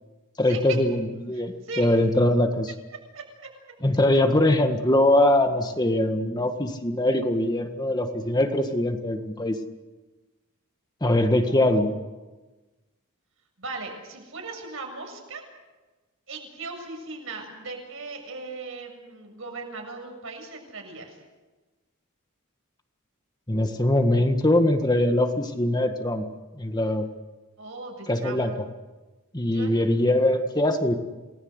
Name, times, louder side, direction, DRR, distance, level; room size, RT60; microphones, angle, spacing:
voice 1, 0.4-2.7 3.8-9.6 11.0-11.9 23.5-26.2 26.6-27.1 28.1-28.5 29.3-31.0, left 1 dB, 20° left, 5 dB, 1.7 m, -22 dB
voice 2, 1.3-1.9 3.1-3.5 11.5-11.8 13.6-15.4 16.3-21.2 27.6-28.4 29.5-29.8, right 3 dB, 65° right, 4 dB, 7.1 m, -38 dB
28.5 x 20.0 x 8.1 m, 1.2 s
head